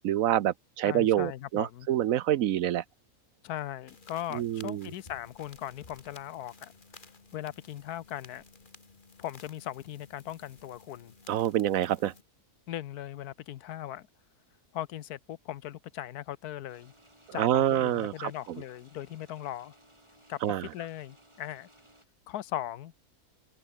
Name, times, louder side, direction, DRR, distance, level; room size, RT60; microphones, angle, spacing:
voice 1, 0.0-2.8 4.3-4.9 11.3-12.1 17.4-18.3 20.4-20.7, right 12 dB, 70° right, 1.0 m, -27 dB
voice 2, 0.8-1.9 3.4-6.7 7.3-8.4 9.2-11.1 12.7-14.1 14.7-16.9 17.3-19.8 20.3-21.7 22.3-22.9, left 12 dB, 80° left, 1.3 m, -39 dB
sound 1, 3.9-12.2, left 4 dB, 35° left, 1.9 m, -55 dB
sound 2, 16.7-22.0, right 1 dB, 15° right, 6.9 m, -60 dB
open air
omnidirectional pair, 1.6 m